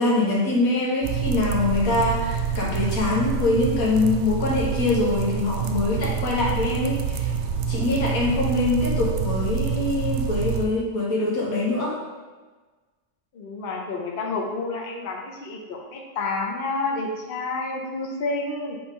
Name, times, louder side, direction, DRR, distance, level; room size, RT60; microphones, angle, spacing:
voice 1, 0.0-7.3 7.7-12.0, left 2 dB, 90° left, -3 dB, 1.7 m, -24 dB
sound 1, 1.0-10.7, right 7 dB, 65° right, 0.7 m, -27 dB
voice 2, 13.3-18.8, left 3 dB, 45° left, 0 dB, 1.0 m, -29 dB
7.7 x 4.1 x 3.6 m, 1.3 s
omnidirectional pair, 1.4 m